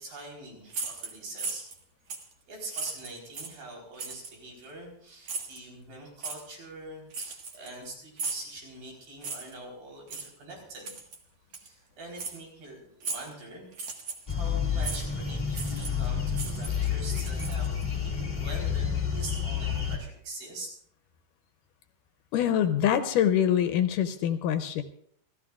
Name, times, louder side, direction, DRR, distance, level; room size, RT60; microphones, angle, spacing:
voice 1, 0.0-1.7 2.5-10.9 11.5-13.7 14.3-20.7, right 2 dB, 85° right, -1 dB, 5.8 m, -44 dB
sound 1, 0.7-1.8 2.1-2.3 2.7-3.6 4.0-4.3 5.2-5.6 6.2-6.4 7.1-7.8 8.2-8.5 9.2-9.6 10.1-10.3 10.8-11.2 11.5-11.7 12.2-12.4 13.0-13.3 13.7-14.3 14.8-15.0 15.5-16.1 16.3-17.8, right 4 dB, 50° right, 2.4 m, -36 dB
sound 2, 14.3-20.0, left 7 dB, 30° left, 0.8 m, -29 dB
voice 2, 22.3-24.8, left 10 dB, 75° left, 9 dB, 2.2 m, -25 dB
30.0 x 13.0 x 2.4 m, 0.68 s
omnidirectional pair, 4.0 m